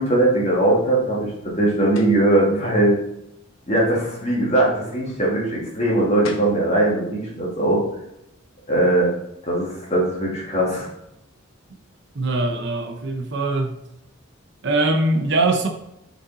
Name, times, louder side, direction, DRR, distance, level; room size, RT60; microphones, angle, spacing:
voice 1, 0.0-3.0 3.7-7.8 8.7-9.1 9.5-10.9, right 1 dB, 30° left, -4 dB, 1.9 m, -20 dB
sound 1, 1.9-2.3 5.9-6.0 6.2-6.6, left 3 dB, 80° left, 0.8 m, -35 dB
voice 2, 12.2-13.8 14.6-15.7, right 2 dB, 60° right, 4 dB, 0.8 m, -22 dB
6.4 x 4.1 x 4.0 m, 0.82 s
head